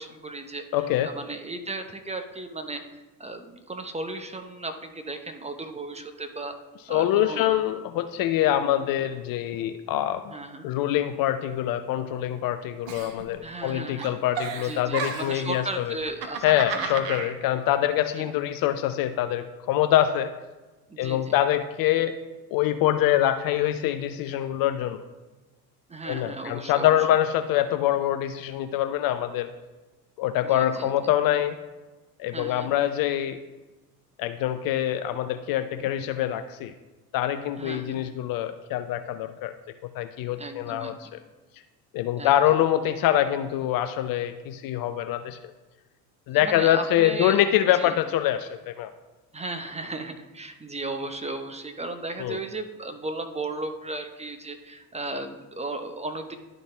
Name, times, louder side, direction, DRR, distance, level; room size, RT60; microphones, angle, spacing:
voice 1, 0.0-2.8 3.2-6.6 6.9-7.5 10.3-10.7 13.4-14.2 14.6-16.4 16.7-16.9 18.2-18.3 20.9-21.3 25.9-26.9 30.4-30.9 32.3-32.7 37.6-38.0 40.4-41.1 42.2-42.4 46.3-47.4 47.7-47.9 49.3-56.4, right 2 dB, 15° right, 6 dB, 0.7 m, -35 dB
voice 2, 0.7-1.1 6.9-10.3 10.6-15.9 16.4-20.3 21.0-22.2 22.5-25.1 26.1-29.5 30.2-31.6 32.2-33.4 34.2-36.7 37.1-39.5 39.9-41.2 41.9-45.4 46.3-48.9 52.2-52.4, left 12 dB, 45° left, 10 dB, 0.5 m, -25 dB
Giggle, 12.9-13.7 14.0-15.5 16.0-17.3, right 6 dB, 60° right, 1.1 m, -33 dB
11.5 x 3.9 x 3.3 m, 1.2 s
hypercardioid pair, 60°, 50 cm